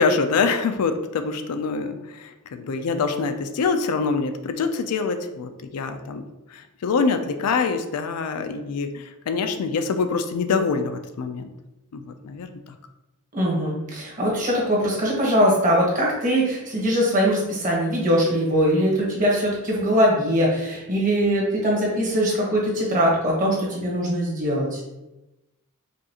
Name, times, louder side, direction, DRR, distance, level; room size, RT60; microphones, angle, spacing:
voice 1, 0.0-6.2 6.5-11.5 11.9-12.5, left 4 dB, 85° left, 8 dB, 0.4 m, -25 dB
voice 2, 13.3-24.8, equal, 40° right, -3 dB, 1.2 m, -21 dB
5.0 x 2.4 x 2.9 m, 0.97 s
head